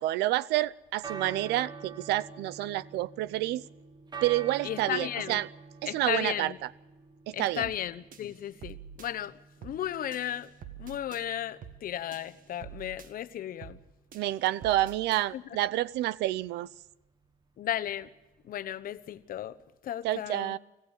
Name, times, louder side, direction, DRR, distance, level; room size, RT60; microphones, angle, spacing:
voice 1, 0.0-3.6 4.2-5.5 5.8-6.7 7.3-7.7 14.1-16.7 20.0-20.6, right 15 dB, 85° right, 0.6 m, -29 dB
sound 1, 0.7-19.7, right 5 dB, 25° right, 1.5 m, -48 dB
voice 2, 4.6-5.4 5.9-6.6 7.3-10.5 10.8-13.8 15.3-15.4 17.6-18.1 18.4-19.6 19.8-20.6, left 11 dB, 55° left, 1.0 m, -35 dB
sound 2, 7.6-7.8 8.1-9.1 9.6-9.8 10.1-11.2 11.6-11.8 12.1-13.1 13.6-13.8 14.1-15.2, right 8 dB, 55° right, 1.7 m, -47 dB
25.5 x 15.0 x 7.3 m
cardioid pair, 110°, 17 cm